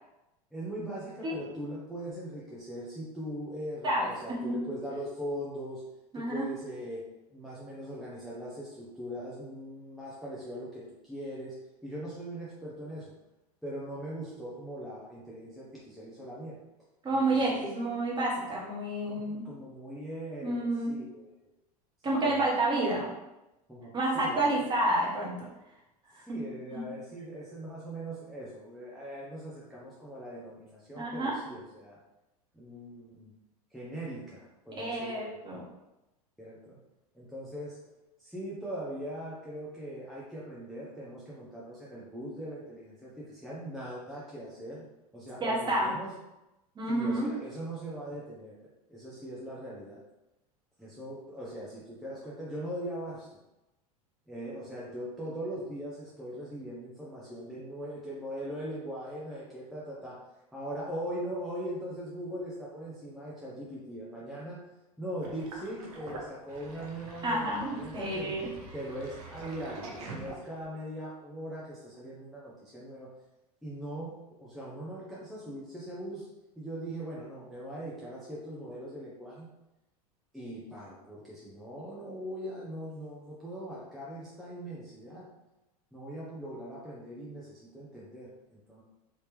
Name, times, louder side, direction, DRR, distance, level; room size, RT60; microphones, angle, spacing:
voice 1, 0.5-5.8 6.1-13.1 13.6-16.6 17.1-17.7 19.1-21.3 22.1-22.4 23.7-24.7 26.3-32.0 32.5-33.3 33.7-35.4 36.4-36.8 37.1-37.8 38.2-44.8 45.1-46.1 46.9-48.6 48.9-50.0 50.8-53.4 54.3-60.2 60.5-64.6 65.0-68.3 68.7-73.1 73.6-76.3 76.6-79.5 80.3-85.3 85.9-88.8, right 1 dB, ahead, -7 dB, 0.8 m, -40 dB
voice 2, 3.8-4.5 6.1-6.5 17.0-19.4 20.4-20.9 22.0-23.1 23.9-25.5 26.1-26.4 26.7-26.9 31.0-31.4 34.8-35.6 45.4-45.9 46.7-47.3 67.2-68.5, right 1 dB, 25° right, -4 dB, 1.3 m, -29 dB
Sink (filling or washing), 65.2-70.8, right 2 dB, 70° right, 1.0 m, -45 dB
3.5 x 2.8 x 3.2 m, 0.97 s
hypercardioid pair, 95°, 20 cm